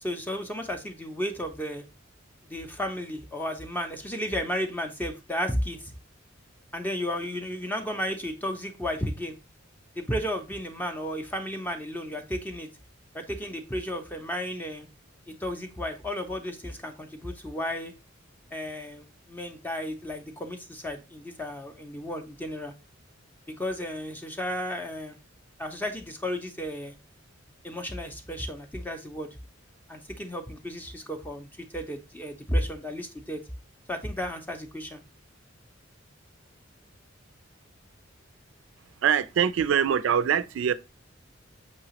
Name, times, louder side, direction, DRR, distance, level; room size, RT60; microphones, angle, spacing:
voice 1, 0.0-1.8 2.4-5.9 6.7-9.4 10.0-12.7 13.1-14.9 15.3-17.9 18.5-22.7 23.5-25.2 25.6-26.9 27.6-29.3 29.9-31.5 31.7-33.4 33.9-35.0, equal, 10° left, 0.4 m, -33 dB
voice 2, 39.0-40.7, right 8 dB, 75° right, 0.3 m, -23 dB
5.5 x 2.9 x 2.8 m
head